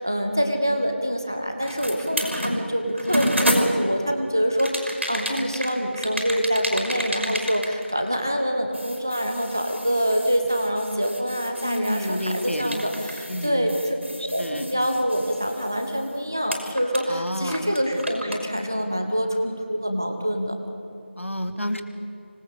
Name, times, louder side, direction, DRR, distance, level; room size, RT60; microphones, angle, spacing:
voice 1, 0.0-14.0 14.3-20.5, equal, 15° right, 5 dB, 1.3 m, -25 dB
sound 1, 1.6-4.1 4.6-8.4 8.7-16.2 16.5-18.4, equal, 75° right, 5.7 m, -30 dB
voice 2, 11.6-12.8 13.3-13.8 14.2-14.8 17.1-17.7 21.2-21.8, equal, 90° left, 7 dB, 3.0 m, -30 dB
25.5 x 20.0 x 8.4 m, 2.6 s
figure-of-eight pair, 180°, 7 cm